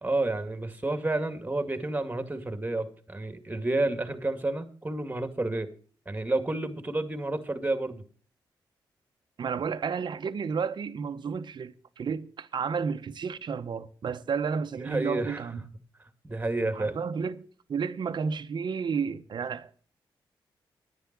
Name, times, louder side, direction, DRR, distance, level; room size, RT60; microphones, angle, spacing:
voice 1, 0.0-5.7 6.1-8.0 14.8-15.5 16.2-17.0, right 2 dB, 20° right, 2.3 m, -30 dB
voice 2, 9.4-15.6 16.7-19.7, right 6 dB, 60° right, 1.0 m, -32 dB
10.5 x 9.5 x 6.1 m
cardioid pair, 65°, 9 cm